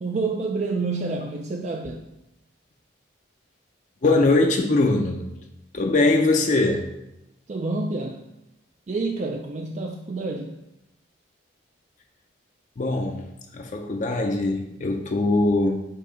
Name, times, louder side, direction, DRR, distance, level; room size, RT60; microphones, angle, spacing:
voice 1, 0.0-2.1 7.5-8.2 8.9-10.6, right 3 dB, 35° right, 3 dB, 0.3 m, -28 dB
voice 2, 4.0-5.3 5.7-6.9 12.8-13.3 13.5-15.8, left 2 dB, 40° left, 3 dB, 0.5 m, -21 dB
6.9 x 2.7 x 5.0 m, 0.91 s
head